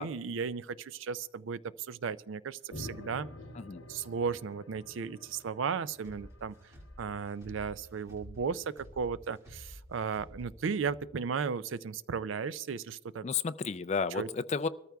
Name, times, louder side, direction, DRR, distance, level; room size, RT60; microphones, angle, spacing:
voice 1, 0.0-3.3 3.9-6.5 7.0-13.2 14.1-14.3, right 6 dB, 70° right, 17 dB, 0.4 m, -35 dB
sound 1, 2.7-7.4, left 1 dB, 65° left, 1.0 m, -48 dB
sound 2, 6.0-11.1, equal, 15° right, 2.2 m, -51 dB
voice 2, 13.2-14.7, left 5 dB, 35° left, 11 dB, 0.3 m, -32 dB
24.5 x 14.0 x 2.3 m, 1.0 s
head